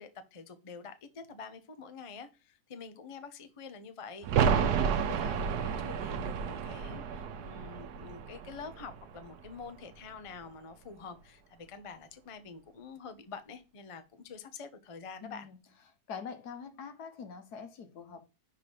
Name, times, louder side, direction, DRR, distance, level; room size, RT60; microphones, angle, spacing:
voice 1, 0.0-15.5, left 5 dB, 35° left, 0.5 m, -47 dB
sound 1, 4.2-9.8 10.1-10.2, right 7 dB, 80° right, 1.3 m, -31 dB
voice 2, 15.2-15.6 16.1-18.3, left 6 dB, 80° left, 1.5 m, -44 dB
5.8 x 3.8 x 4.9 m
omnidirectional pair, 1.7 m